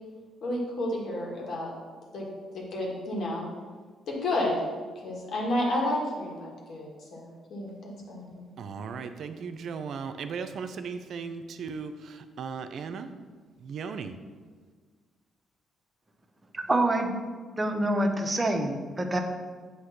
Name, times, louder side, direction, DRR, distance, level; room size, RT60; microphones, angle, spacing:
voice 1, 0.4-1.7 2.1-2.3 2.5-3.4 4.1-4.6 5.0-8.4, left 1 dB, 65° left, -2 dB, 1.9 m, -31 dB
voice 2, 8.6-13.1 13.6-14.1, right 5 dB, 65° right, 9 dB, 0.5 m, -37 dB
voice 3, 16.5-17.1 17.6-19.2, right 1 dB, 25° right, 4 dB, 0.8 m, -26 dB
8.1 x 2.9 x 5.8 m, 1.5 s
cardioid pair, 90°, 0 cm